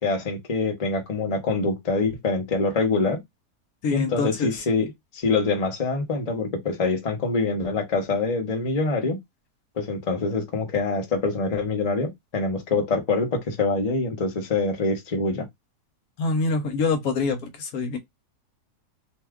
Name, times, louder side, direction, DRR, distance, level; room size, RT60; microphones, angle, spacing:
voice 1, 0.0-3.2 3.9-9.2 9.8-15.4, left 3 dB, 35° left, 0.6 m, -25 dB
voice 2, 3.8-4.5 16.2-18.0, left 4 dB, 70° left, 1.1 m, -25 dB
2.8 x 2.3 x 3.4 m
omnidirectional pair, 1.7 m